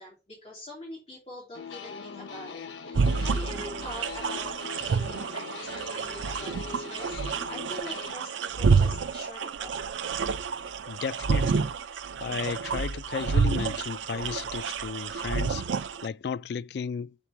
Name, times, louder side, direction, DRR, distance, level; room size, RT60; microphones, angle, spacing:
voice 1, 0.0-7.2 7.5-9.9, equal, 35° left, 3.2 m, -44 dB
sound 1, 1.5-8.1, left 4 dB, 85° left, 0.7 m, -41 dB
sound 2, 2.9-16.1, right 5 dB, 90° right, 0.4 m, -29 dB
voice 2, 10.9-11.7 12.2-15.7 16.0-17.1, left 6 dB, 65° left, 0.3 m, -34 dB
5.9 x 4.7 x 5.6 m
head